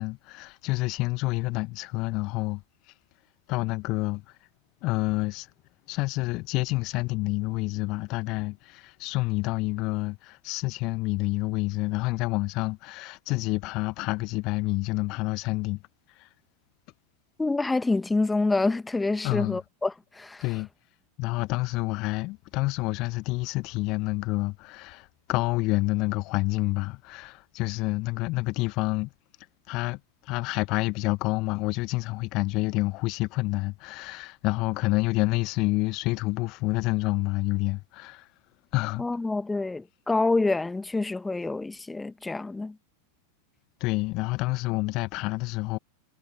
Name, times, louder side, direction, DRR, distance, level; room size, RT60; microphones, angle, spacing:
voice 1, 0.0-2.9 3.5-4.4 4.8-5.5 5.9-15.8 16.1-16.3 19.2-19.6 20.4-20.7 21.2-29.1 29.7-38.3 38.7-39.0 43.8-45.8, left 23 dB, 40° left, 1.3 m, -28 dB
voice 2, 17.4-20.4 39.0-42.8, left 3 dB, 10° left, 1.8 m, -27 dB
figure-of-eight pair, 90°, 0 cm